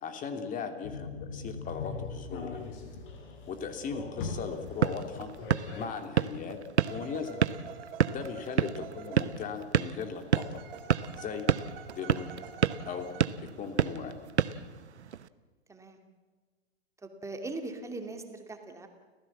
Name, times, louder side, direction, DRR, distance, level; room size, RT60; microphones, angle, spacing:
voice 1, 0.0-2.6 3.5-5.3 5.8-6.6 6.9-7.4 8.1-10.6 11.2-11.5 11.9-12.3 12.8-13.1 13.6-14.1, left 6 dB, 25° left, 7 dB, 2.7 m, -38 dB
sound 1, 0.8-5.9, left 4 dB, 50° left, 5.2 m, -40 dB
sound 2, 4.5-15.3, right 8 dB, 80° right, 1.0 m, -31 dB
sound 3, 6.8-9.8 10.3-13.2, right 7 dB, 60° right, 2.9 m, -47 dB
voice 2, 15.7-16.0 17.0-18.9, right 2 dB, 10° right, 5 dB, 2.5 m, -40 dB
29.5 x 15.5 x 7.4 m, 1.4 s
hypercardioid pair, 115°, 33 cm